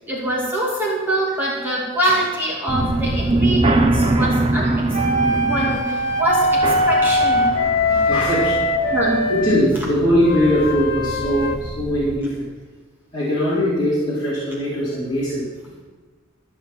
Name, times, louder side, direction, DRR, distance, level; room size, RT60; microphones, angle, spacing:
voice 1, 0.1-4.8 5.5-7.5 8.9-9.3 9.7-9.8, right 1 dB, 10° right, -5 dB, 2.6 m, -24 dB
sound 1, 2.7-12.2, right 2 dB, 25° right, 0.9 m, -24 dB
sound 2, 4.9-9.6 10.2-11.6, left 1 dB, 45° left, 1.5 m, -21 dB
voice 2, 7.9-8.7 9.3-12.4 13.1-15.4, equal, 20° left, -11 dB, 4.1 m, -20 dB
14.5 x 6.7 x 7.5 m, 1.4 s
head